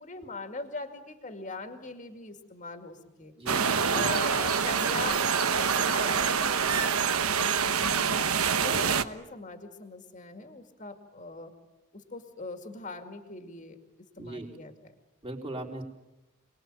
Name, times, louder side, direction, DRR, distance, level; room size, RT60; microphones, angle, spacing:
voice 1, 0.0-3.3 3.9-8.3 8.6-11.5 11.9-13.8 14.2-14.7, left 3 dB, 35° left, 6 dB, 2.3 m, -41 dB
voice 2, 3.4-4.1 8.7-8.8 14.2-14.5 15.2-15.8, right 1 dB, 25° right, -2 dB, 3.9 m, -39 dB
sound 1, 3.5-9.0, right 6 dB, 85° right, 1.2 m, -26 dB
28.5 x 20.5 x 9.0 m, 1.0 s
head